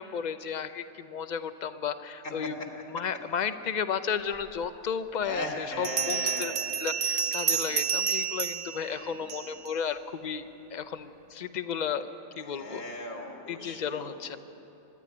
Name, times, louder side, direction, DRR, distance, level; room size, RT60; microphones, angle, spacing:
voice 1, 0.0-2.6 2.9-10.4 10.7-12.1 12.4-12.8 13.5-14.4, left 7 dB, 40° left, 11 dB, 0.7 m, -33 dB
Bell, 4.6-4.7 5.8-9.7, right 7 dB, 80° right, 0.3 m, -30 dB
voice 2, 5.2-6.6 8.9-9.2 12.5-14.4, left 1 dB, 75° left, 0 dB, 2.7 m, -37 dB
26.0 x 11.0 x 9.7 m, 3.0 s
omnidirectional pair, 1.4 m